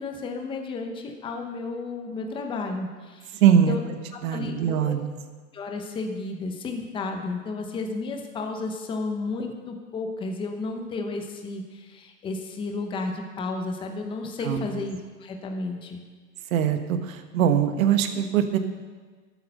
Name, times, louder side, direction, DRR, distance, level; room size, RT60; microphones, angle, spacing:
voice 1, 0.0-3.8 4.3-5.0 5.5-16.0, left 3 dB, 10° left, 3 dB, 0.9 m, -32 dB
voice 2, 3.4-3.8 4.2-5.1 14.4-14.7 16.5-18.6, right 9 dB, 55° right, 8 dB, 1.5 m, -22 dB
13.0 x 8.8 x 6.5 m, 1.5 s
hypercardioid pair, 145°, 48 cm